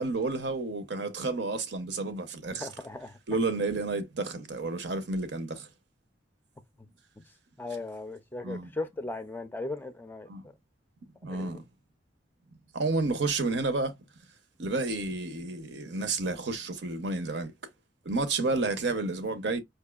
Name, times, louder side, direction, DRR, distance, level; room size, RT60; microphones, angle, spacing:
voice 1, 0.0-2.7 3.3-5.7 8.4-8.7 10.3-10.5 11.2-11.6 12.7-13.9 14.6-17.5 18.0-19.6, right 3 dB, 75° right, 0.7 m, -30 dB
voice 2, 2.6-3.1 7.6-10.3 11.3-11.6, left 2 dB, 10° left, 0.4 m, -37 dB
4.7 x 2.6 x 2.3 m
head